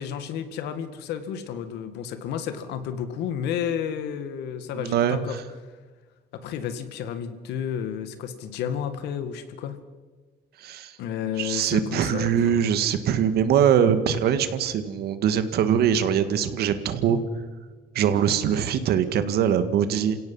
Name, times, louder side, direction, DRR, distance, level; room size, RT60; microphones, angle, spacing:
voice 1, 0.0-5.4 6.3-9.8 11.0-12.5, left 8 dB, 85° left, 10 dB, 2.0 m, -31 dB
voice 2, 4.7-5.4 10.6-10.9 11.4-17.2 17.9-20.2, right 8 dB, 70° right, 11 dB, 1.8 m, -22 dB
28.5 x 17.0 x 5.6 m, 1.4 s
cardioid pair, 110°, 17 cm